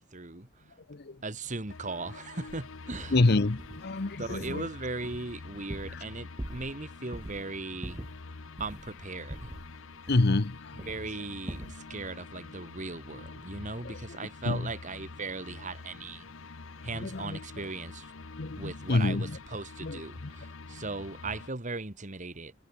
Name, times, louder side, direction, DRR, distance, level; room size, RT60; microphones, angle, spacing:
voice 1, 0.0-0.7 1.2-3.2 4.2-8.0 8.6-9.5 10.9-16.3 16.8-18.1 18.6-22.5, right 3 dB, 40° right, 2.0 m, -38 dB
voice 2, 0.9-1.2 3.1-4.7 5.9-6.0 10.1-10.7 13.8-14.0 14.5-14.7 16.9-17.4 18.4-19.4 19.8-20.3, left 2 dB, 55° left, 0.9 m, -28 dB
sound 1, 1.7-21.5, left 3 dB, 85° left, 1.0 m, -46 dB
sound 2, 2.5-2.6 2.9-3.2 3.6-3.8 4.3-4.7 5.0-6.1 6.4-6.8 7.1-7.4 7.8-8.9 9.3-10.5 10.8-11.1 11.5-11.8, right 1 dB, 20° right, 1.0 m, -42 dB
head